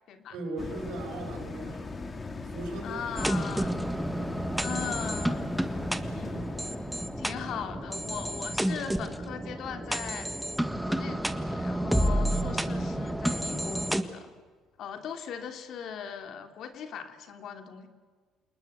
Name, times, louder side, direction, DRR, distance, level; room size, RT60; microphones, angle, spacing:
voice 1, 0.3-1.9 2.4-3.4, right 2 dB, 80° right, 1 dB, 6.3 m, -38 dB
sound 1, 0.6-11.3 11.7-11.8, left 3 dB, 30° left, 2.4 m, -41 dB
voice 2, 2.8-3.8 4.6-5.5 6.1-6.5 7.2-10.3 10.8-14.3 14.8-17.9, left 8 dB, 65° left, 6 dB, 2.9 m, -39 dB
sound 2, 3.2-14.0, right 1 dB, 5° right, 1.7 m, -30 dB
28.5 x 20.0 x 8.0 m, 1.5 s
cardioid pair, 100°, 0 cm